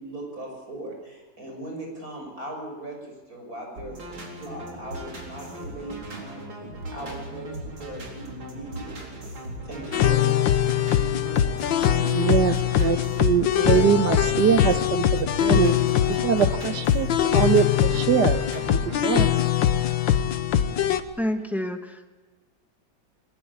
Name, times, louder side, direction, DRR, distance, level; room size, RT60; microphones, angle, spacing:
voice 1, 0.0-9.3 9.6-10.6, right 1 dB, 45° right, 1 dB, 7.0 m, -39 dB
sound 1, 3.8-19.0, right 1 dB, 85° right, 5.0 m, -38 dB
sound 2, 9.9-21.0, left 10 dB, 80° left, 1.7 m, -22 dB
voice 2, 12.0-15.7 16.1-19.3, right 7 dB, 65° right, 9 dB, 1.6 m, -23 dB
voice 3, 21.2-22.1, equal, ahead, 5 dB, 1.2 m, -28 dB
22.0 x 21.0 x 8.5 m, 1.3 s
omnidirectional pair, 2.1 m